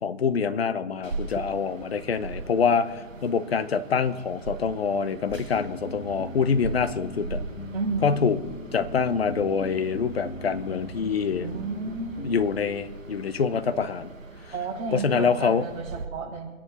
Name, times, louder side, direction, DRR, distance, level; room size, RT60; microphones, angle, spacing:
voice 1, 0.0-7.4 8.0-8.4 8.7-11.5 12.2-14.1 14.9-15.7, left 6 dB, 50° left, 12 dB, 1.1 m, -25 dB
sound 1, 1.0-16.1, right 3 dB, 75° right, 1.8 m, -40 dB
sound 2, 5.5-12.4, left 1 dB, 85° left, 2.6 m, -39 dB
voice 2, 7.7-8.4 11.4-12.2 14.5-16.5, right 3 dB, 35° right, -7 dB, 6.3 m, -32 dB
26.5 x 10.5 x 4.4 m, 1.3 s
figure-of-eight pair, 145°, 40 cm